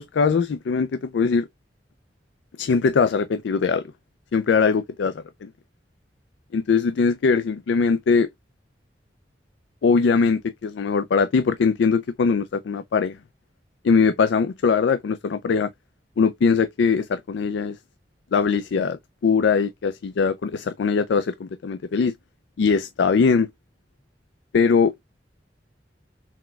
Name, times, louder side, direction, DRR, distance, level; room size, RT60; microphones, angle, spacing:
voice 1, 0.0-1.5 2.6-3.8 4.3-5.5 6.5-8.3 9.8-13.2 13.8-15.7 16.2-17.8 18.3-22.1 22.6-23.5 24.5-24.9, left 5 dB, 80° left, 0.4 m, -21 dB
4.2 x 4.1 x 2.2 m
head